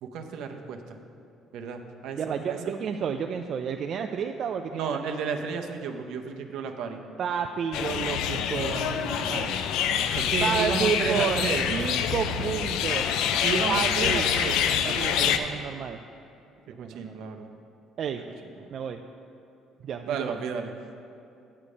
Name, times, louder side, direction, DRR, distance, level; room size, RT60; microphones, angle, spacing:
voice 1, 0.0-0.8 1.5-2.6 4.7-7.0 10.2-11.7 13.4-14.6 16.7-17.5 18.2-18.3 18.6-18.7 20.1-20.7, right 5 dB, 75° right, 5 dB, 0.7 m, -32 dB
voice 2, 2.2-5.0 7.2-9.6 10.4-13.1 13.7-14.3 14.8-16.0 16.7-17.1 18.0-18.2 18.7-19.0 19.8-20.3, right 7 dB, 50° right, 5 dB, 0.3 m, -31 dB
sound 1, 7.7-15.4, left 8 dB, 80° left, 0.4 m, -26 dB
8.6 x 6.7 x 5.1 m, 2.6 s
cardioid pair, 115°, 0 cm